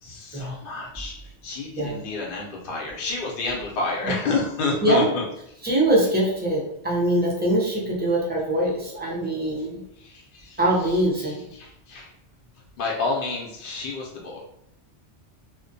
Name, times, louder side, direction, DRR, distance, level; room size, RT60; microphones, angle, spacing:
voice 1, 0.0-1.1 1.4-5.2 10.0-11.0 11.3-12.1 12.8-14.4, left 3 dB, 60° left, -3 dB, 0.6 m, -29 dB
voice 2, 5.6-9.8 10.6-11.4, right 1 dB, 15° right, -5 dB, 0.4 m, -23 dB
2.4 x 2.1 x 2.6 m, 0.77 s
omnidirectional pair, 1.2 m